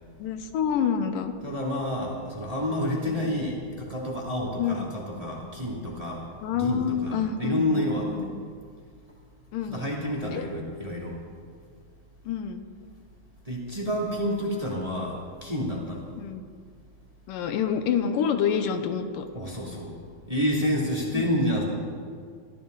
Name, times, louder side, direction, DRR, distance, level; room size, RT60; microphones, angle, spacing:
voice 1, 0.2-1.3 3.1-3.2 4.6-4.9 6.4-8.3 9.5-9.9 10.3-10.5 12.3-12.6 16.2-16.4 17.3-19.3 21.1-21.3, left 7 dB, 85° left, 7 dB, 2.6 m, -28 dB
voice 2, 1.4-6.2 6.5-8.1 9.7-11.2 13.4-16.0 19.3-20.0 20.3-21.6, equal, 10° right, -4 dB, 2.4 m, -29 dB
24.5 x 14.5 x 4.0 m, 2.1 s
omnidirectional pair, 3.8 m